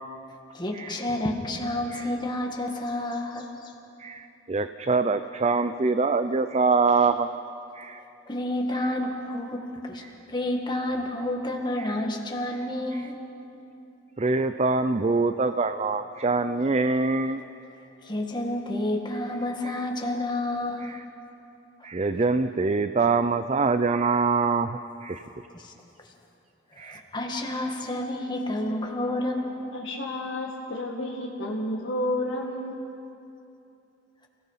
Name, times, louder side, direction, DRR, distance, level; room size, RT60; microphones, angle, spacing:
voice 1, 0.5-3.7 8.3-10.0 10.3-13.2 18.0-21.0 25.5-25.7 26.7-29.7, left 1 dB, 25° left, 1 dB, 2.0 m, -30 dB
voice 2, 4.0-7.3 7.8-8.0 11.8-11.9 14.2-17.4 19.6-19.8 20.8-21.0 21.8-25.2 26.8-27.0, right 4 dB, 35° right, 9 dB, 0.5 m, -24 dB
voice 3, 29.7-32.8, left 1 dB, 75° left, -4 dB, 2.0 m, -31 dB
29.5 x 18.0 x 5.8 m, 2.8 s
head